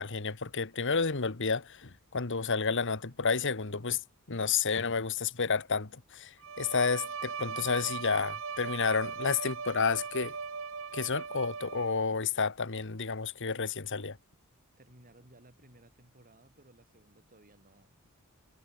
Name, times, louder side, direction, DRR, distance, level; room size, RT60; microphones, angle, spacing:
voice 1, 0.0-4.0 4.3-10.4 10.9-14.2, left 5 dB, 55° left, 1.5 m, -31 dB
Bowed string instrument, 6.4-12.2, right 5 dB, 65° right, 2.2 m, -39 dB
voice 2, 14.8-18.1, right 1 dB, 40° right, 7.1 m, -59 dB
head